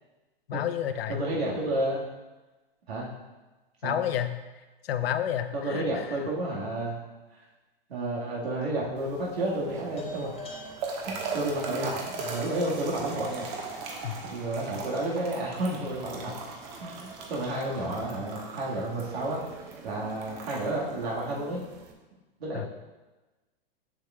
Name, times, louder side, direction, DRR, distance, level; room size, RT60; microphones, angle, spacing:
voice 1, 0.5-1.3 3.8-4.3 4.8-6.2 14.0-14.1 22.5-22.7, left 10 dB, 75° left, 9 dB, 0.6 m, -30 dB
voice 2, 1.1-2.0 2.9-3.1 3.8-4.0 5.5-7.0 7.9-10.3 11.1-13.5 14.2-16.3 16.8-19.4 19.8-21.6 22.4-22.7, right 1 dB, 85° right, -5 dB, 1.7 m, -31 dB
sound 1, 8.0-8.6 10.0-14.4, equal, 20° left, 1.2 m, -45 dB
sound 2, 9.0-21.9, right 4 dB, 45° right, 1.3 m, -40 dB
sound 3, 9.6-21.1, right 4 dB, 10° right, 0.3 m, -48 dB
7.4 x 6.4 x 2.3 m, 1.2 s
hypercardioid pair, 125°, 30 cm